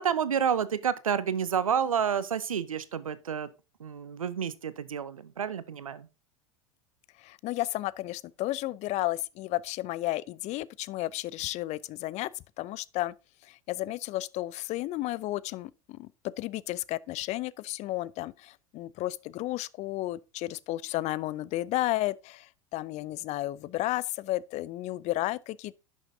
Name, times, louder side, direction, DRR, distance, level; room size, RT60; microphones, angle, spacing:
voice 1, 0.0-3.5 3.8-6.1, right 7 dB, 85° right, 0.8 m, -29 dB
voice 2, 7.2-12.3 12.6-13.1 13.5-25.7, left 16 dB, 40° left, 0.5 m, -33 dB
11.0 x 6.5 x 3.6 m
hypercardioid pair, 85°, 17 cm